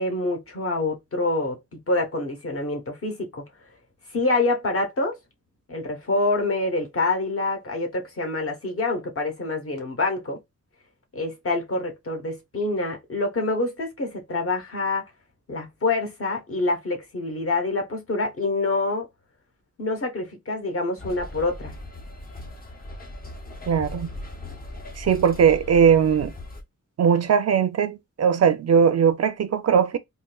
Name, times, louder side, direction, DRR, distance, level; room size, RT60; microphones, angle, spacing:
voice 1, 0.0-3.4 4.1-5.2 5.7-10.4 11.1-15.1 15.5-19.1 19.8-21.7, left 2 dB, 50° left, 0.9 m, -26 dB
sound 1, 21.0-26.6, left 2 dB, 30° left, 0.6 m, -38 dB
voice 2, 23.7-24.1 25.0-26.3 27.0-30.0, right 7 dB, 55° right, 0.4 m, -19 dB
3.7 x 2.6 x 2.2 m
wide cardioid pair, 180°, 30 cm